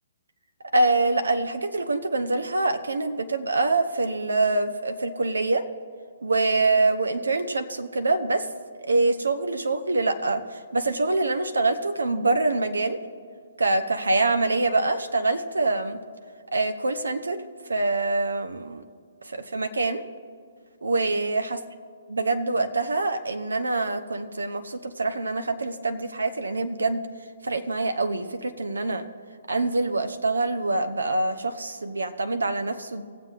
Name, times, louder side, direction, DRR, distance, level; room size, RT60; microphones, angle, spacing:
voice 1, 0.7-5.6 6.2-8.5 8.8-13.0 13.6-16.0 16.5-17.4 17.7-18.8 19.2-20.0 20.8-21.6 22.1-27.0 27.4-29.1 29.5-33.0, right 2 dB, 75° right, 8 dB, 0.7 m, -25 dB
19.5 x 7.6 x 2.5 m, 2.2 s
figure-of-eight pair, 130°, 0 cm